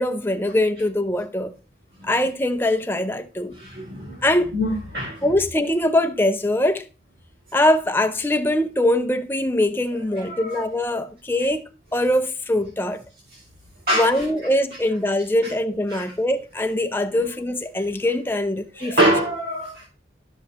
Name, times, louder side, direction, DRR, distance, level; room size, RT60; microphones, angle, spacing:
voice 1, 0.0-1.5 2.0-3.5 4.2-4.5 5.2-6.8 7.5-13.0 13.9-19.0, left 1 dB, 10° left, 0.5 m, -22 dB
voice 2, 3.5-4.2 4.5-5.2 10.2-10.6 13.9-14.1 15.9-16.0 18.8-19.8, right 1 dB, 55° right, 2.3 m, -24 dB
12.5 x 6.0 x 3.0 m
head